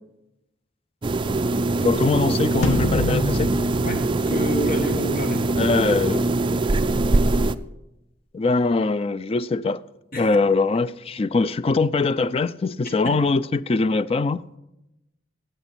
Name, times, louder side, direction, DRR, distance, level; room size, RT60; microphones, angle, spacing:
sound 1, 1.0-7.5, right 2 dB, 25° right, 0.4 m, -22 dB
voice 1, 1.8-3.5 5.6-6.3 8.3-9.8 10.2-14.4, left 3 dB, 30° left, 0.4 m, -22 dB
sound 2, 2.6-5.2, left 1 dB, 85° left, 1.5 m, -27 dB
voice 2, 3.8-5.6 10.1-10.3 13.0-13.1, equal, 50° left, 1.7 m, -29 dB
18.0 x 8.0 x 6.0 m
head